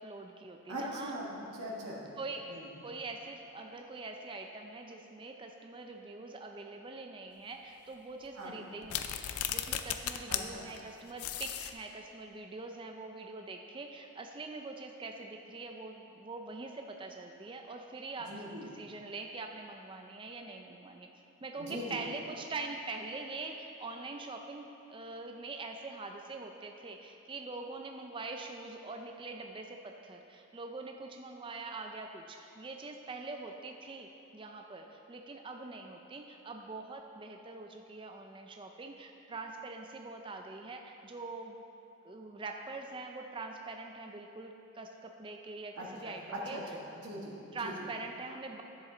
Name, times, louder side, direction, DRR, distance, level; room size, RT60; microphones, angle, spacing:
voice 1, 0.0-1.1 2.2-18.3 18.6-21.1 21.4-41.6 42.0-46.6 47.0-47.1 47.5-48.6, right 3 dB, 20° right, 3 dB, 0.4 m, -44 dB
voice 2, 0.7-2.0 2.5-2.7 8.4-8.7 10.3-10.6 18.3-18.7 21.6-22.0 45.8-46.6 46.9-47.7, equal, 90° right, -4 dB, 1.4 m, -41 dB
sound 1, 8.8-10.4 10.7-10.8 11.2-11.7, left 11 dB, 80° left, 0.4 m, -35 dB
10.5 x 7.2 x 3.8 m, 3.0 s
head